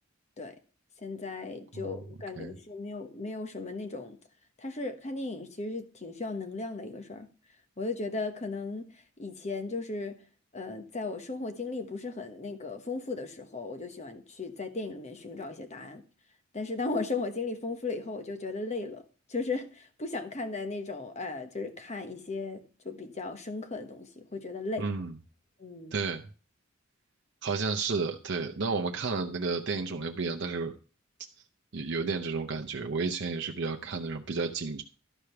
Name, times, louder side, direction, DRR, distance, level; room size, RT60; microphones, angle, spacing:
voice 1, 1.0-4.2 4.6-7.3 7.8-8.9 9.2-10.2 10.5-16.0 16.5-19.0 19.3-24.9 25.6-25.9, left 3 dB, 35° left, 1.2 m, -36 dB
voice 2, 24.8-25.1 25.9-26.3 27.4-30.7 31.7-34.8, right 4 dB, 55° right, 0.7 m, -32 dB
12.0 x 5.0 x 5.8 m
head